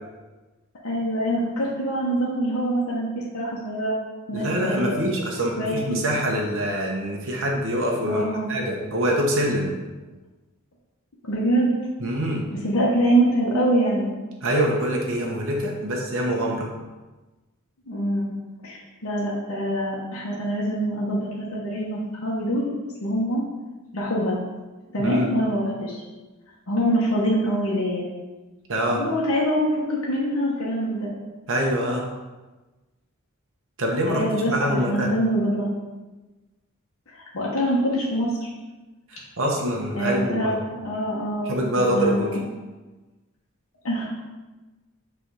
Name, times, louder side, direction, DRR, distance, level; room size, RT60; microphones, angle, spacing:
voice 1, 0.8-4.0 4.3-5.0 5.6-6.0 8.1-8.5 11.2-11.7 12.6-14.1 17.9-18.3 18.6-22.7 23.0-23.4 23.9-24.4 24.9-26.0 26.7-28.0 28.9-31.1 34.1-34.5 34.9-35.7 37.1-38.5 39.9-40.6 40.8-42.4 43.8-44.1, equal, 75° left, -5 dB, 1.1 m, -24 dB
voice 2, 4.3-8.2 8.5-9.7 12.0-12.5 14.4-16.7 25.0-25.3 28.7-29.0 31.5-32.0 33.8-35.1 39.1-40.6 41.5-42.3, equal, 65° right, -1 dB, 1.1 m, -25 dB
6.4 x 3.4 x 4.8 m, 1.2 s
head